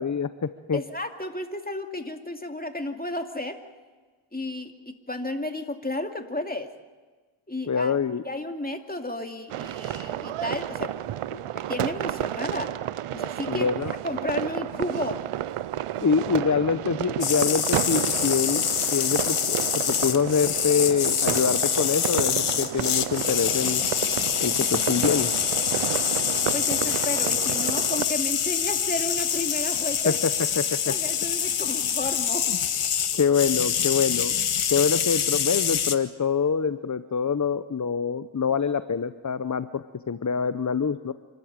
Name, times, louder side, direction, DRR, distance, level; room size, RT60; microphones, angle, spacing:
voice 1, 0.0-0.8 7.7-8.2 11.3-11.4 13.5-13.9 16.0-18.6 18.9-19.6 19.9-23.8 24.4-25.3 30.0-30.9 32.5-32.6 33.2-41.1, left 6 dB, 35° left, 12 dB, 0.9 m, -25 dB
voice 2, 0.7-3.6 4.3-6.7 7.5-8.0 8.2-10.9 11.5-12.7 13.1-13.7 14.0-15.2 26.5-30.2 30.9-32.5, left 1 dB, 15° left, 5 dB, 2.5 m, -32 dB
sound 1, 9.5-28.1, right 12 dB, 85° right, 0.6 m, -31 dB
sound 2, 17.2-36.0, left 8 dB, 85° left, 1.2 m, -26 dB
26.5 x 13.5 x 8.9 m, 1.4 s
cardioid pair, 40°, 50 cm